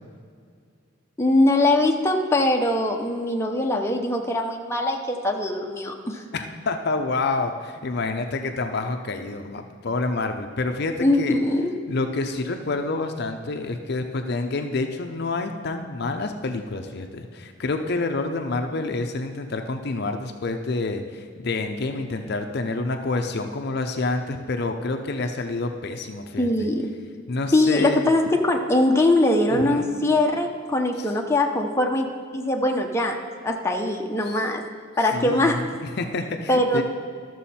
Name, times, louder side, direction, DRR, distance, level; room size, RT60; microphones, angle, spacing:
voice 1, 1.2-6.2 11.0-11.7 26.4-26.9 27.5-32.1 32.3-33.2 33.4-34.6 35.0-35.6 36.5-36.8, left 1 dB, 15° left, 1 dB, 0.7 m, -22 dB
voice 2, 6.3-11.4 11.9-26.7 27.3-28.1 29.5-29.9 31.0-31.1 34.3-34.4 35.0-36.8, left 3 dB, 55° left, 6 dB, 0.6 m, -28 dB
13.0 x 6.3 x 4.2 m, 2.2 s
head